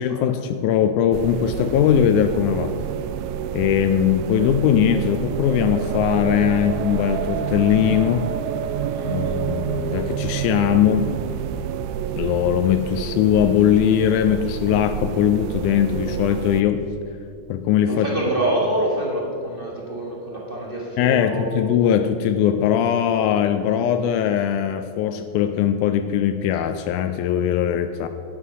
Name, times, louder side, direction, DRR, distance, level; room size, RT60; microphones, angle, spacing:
voice 1, 0.0-2.8 3.5-8.3 9.0-11.1 12.2-16.9 17.5-18.1 21.0-28.1, left 9 dB, 85° left, 8 dB, 2.0 m, -20 dB
sound 1, 1.1-16.6, right 9 dB, 85° right, 2.0 m, -28 dB
voice 2, 8.9-9.4 17.9-21.6, right 1 dB, 60° right, -3 dB, 0.5 m, -26 dB
11.0 x 8.2 x 6.1 m, 2.7 s
omnidirectional pair, 3.5 m